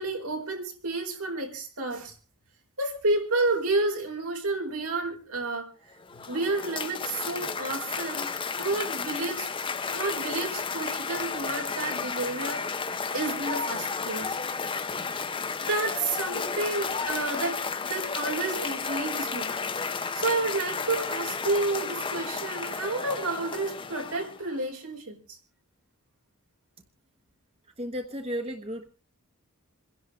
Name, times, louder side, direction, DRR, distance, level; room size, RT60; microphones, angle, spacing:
voice 1, 0.0-2.1 2.8-5.7 6.3-8.3 8.6-9.5 9.8-14.4 15.6-19.5 20.1-25.4, right 2 dB, 85° right, 1 dB, 4.8 m, -30 dB
Cheering / Applause, 5.9-24.6, left 5 dB, 25° left, 0.7 m, -33 dB
voice 2, 27.8-28.9, equal, 25° right, 5 dB, 1.1 m, -33 dB
28.0 x 11.0 x 3.5 m, 0.34 s
head